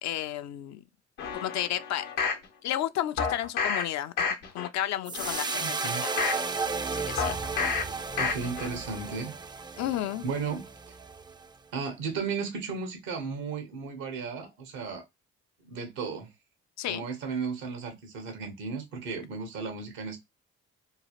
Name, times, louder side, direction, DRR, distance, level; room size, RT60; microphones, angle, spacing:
voice 1, 0.0-0.8 1.3-2.3 2.6-4.2 4.5-5.8 6.0-6.1 6.9-7.4 9.8-10.2 16.8-17.1, left 12 dB, 65° left, 0.4 m, -32 dB
sound 1, 1.2-2.4 3.2-3.8 4.2-4.7 5.1-6.4 7.2-7.8 8.2-8.7 9.1-9.2, left 5 dB, 85° left, 0.9 m, -30 dB
sound 2, 5.1-11.5, right 4 dB, 15° right, 0.3 m, -34 dB
voice 2, 5.6-6.1 8.2-9.3 10.2-11.0 11.7-15.0 15.6-16.3 16.9-20.2, right 5 dB, 85° right, 1.0 m, -35 dB
2.9 x 2.4 x 2.8 m
hypercardioid pair, 50°, 30 cm